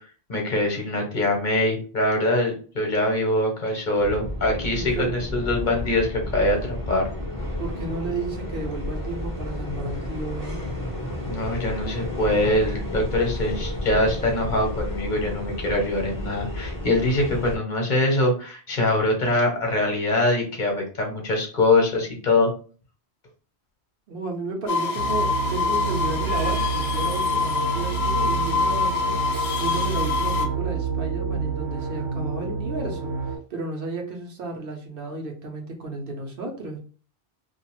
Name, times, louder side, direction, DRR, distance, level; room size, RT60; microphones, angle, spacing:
voice 1, 0.3-7.1 11.3-22.5, left 2 dB, 50° left, 1 dB, 0.9 m, -23 dB
sound 1, 4.0-17.6, left 1 dB, 20° left, 0.6 m, -32 dB
voice 2, 4.8-5.1 7.6-10.7 24.1-29.2 29.6-33.1 33.5-36.8, right 3 dB, 60° right, 2 dB, 0.9 m, -33 dB
sound 2, 24.7-30.5, left 5 dB, 75° left, 0.8 m, -25 dB
sound 3, 24.9-33.4, right 5 dB, 85° right, 1.0 m, -28 dB
2.5 x 2.4 x 2.9 m, 0.39 s
omnidirectional pair, 1.1 m